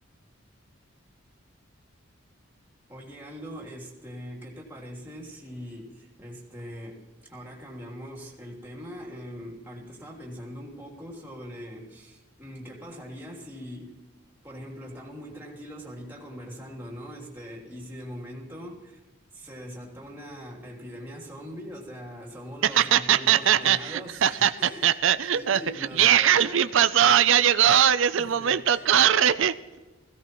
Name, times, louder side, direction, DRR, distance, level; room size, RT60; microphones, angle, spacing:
voice 1, 2.9-7.0 7.3-14.0 14.4-19.0 19.3-25.0 25.3-26.6 28.1-28.8, equal, 10° right, -3 dB, 3.0 m, -41 dB
voice 2, 22.6-29.5, right 9 dB, 65° right, 13 dB, 0.5 m, -21 dB
21.0 x 16.5 x 3.1 m, 1.2 s
head